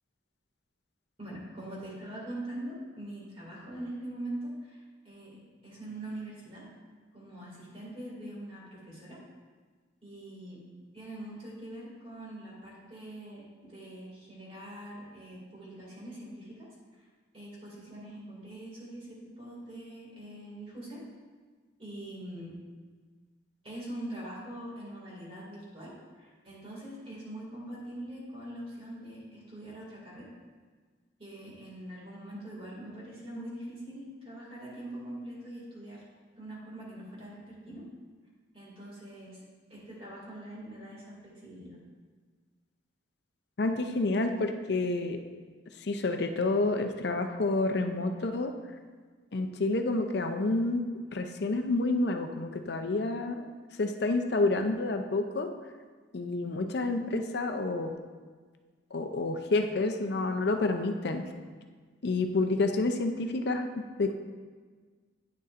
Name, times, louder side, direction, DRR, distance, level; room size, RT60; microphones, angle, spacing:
voice 1, 1.2-6.6 7.1-9.2 10.0-10.6 10.9-17.1 17.3-21.0 21.8-22.5 23.6-30.3 31.2-36.0 36.4-37.9 38.5-39.4 39.7-41.8, right 1 dB, 30° right, -5 dB, 2.2 m, -43 dB
voice 2, 43.6-45.2 45.8-48.5 49.3-50.9 51.1-53.4 53.8-55.5 56.1-57.9 58.9-61.2 62.0-64.1, left 2 dB, 60° left, 6 dB, 0.5 m, -29 dB
9.5 x 6.8 x 2.5 m, 1.5 s
head